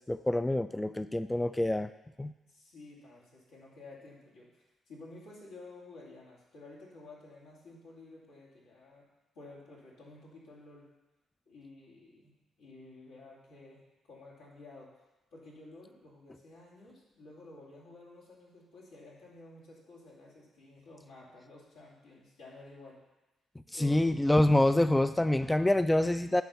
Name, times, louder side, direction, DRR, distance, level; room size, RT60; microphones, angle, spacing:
voice 1, 0.1-1.9 2.2-2.3 23.8-26.4, left 1 dB, 10° left, 11 dB, 0.3 m, -26 dB
voice 2, 2.5-9.0 9.3-10.9 11.5-13.8 14.1-15.0 15.3-23.0 23.7-24.1, left 2 dB, 85° left, -6 dB, 2.7 m, -52 dB
9.3 x 3.7 x 6.9 m, 1.0 s
supercardioid pair, 55°, 0 cm